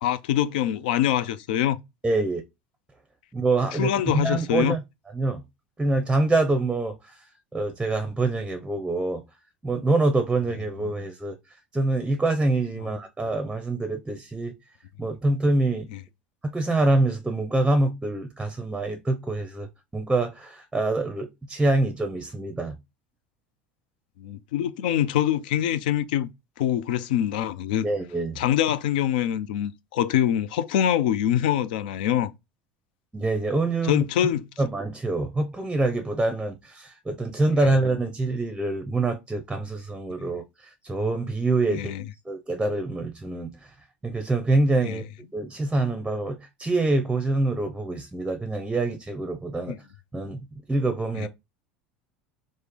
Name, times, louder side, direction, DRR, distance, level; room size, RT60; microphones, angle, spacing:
voice 1, 0.0-1.8 3.7-4.8 24.2-26.3 26.6-27.8 28.4-32.3 33.9-34.4 37.6-37.7 41.7-42.0 44.8-45.0 49.7-49.8 51.2-51.3, left 11 dB, 70° left, 0.3 m, -24 dB
voice 2, 2.0-2.4 3.3-4.8 5.1-5.4 5.8-7.2 7.5-9.2 9.6-11.4 11.7-14.5 15.0-15.9 16.4-22.8 27.8-28.4 33.1-34.0 34.6-41.9 42.3-43.7 44.0-45.0 45.3-49.8 50.1-51.3, right 2 dB, 10° right, 0.5 m, -25 dB
3.2 x 2.0 x 3.5 m
hypercardioid pair, 80°, 5 cm